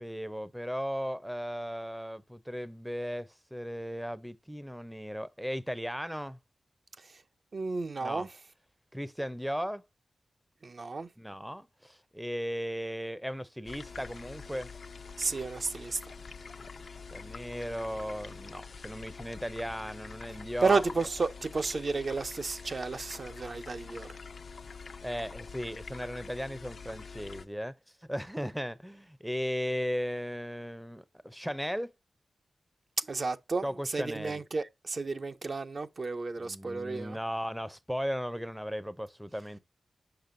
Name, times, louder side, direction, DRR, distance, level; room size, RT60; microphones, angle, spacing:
voice 1, 0.0-6.4 8.0-8.3 8.9-9.8 11.2-14.7 16.6-20.8 25.0-27.7 28.0-31.9 33.6-34.4 36.4-39.6, equal, ahead, 0.5 m, -36 dB
voice 2, 7.5-8.3 10.6-11.1 15.2-16.0 20.6-24.1 33.0-37.2, right 4 dB, 55° right, 0.5 m, -32 dB
sound 1, 13.6-27.5, left 5 dB, 70° left, 0.5 m, -46 dB
6.7 x 5.5 x 2.5 m
cardioid pair, 65°, 0 cm